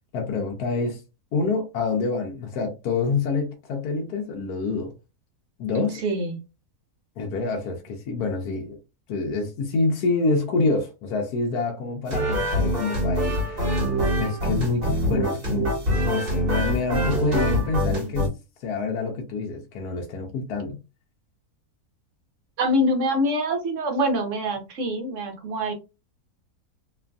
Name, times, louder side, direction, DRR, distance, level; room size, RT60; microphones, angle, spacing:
voice 1, 0.1-1.0 1.3-4.9 5.6-6.0 7.2-8.8 9.1-13.7 14.2-15.7 16.0-18.3 18.6-20.8, left 4 dB, 75° left, 1.1 m, -27 dB
voice 2, 5.7-6.4 22.6-25.7, equal, 60° right, 0.9 m, -25 dB
sound 1, 12.1-18.3, equal, 40° right, 1.2 m, -24 dB
3.0 x 2.4 x 2.2 m
omnidirectional pair, 1.7 m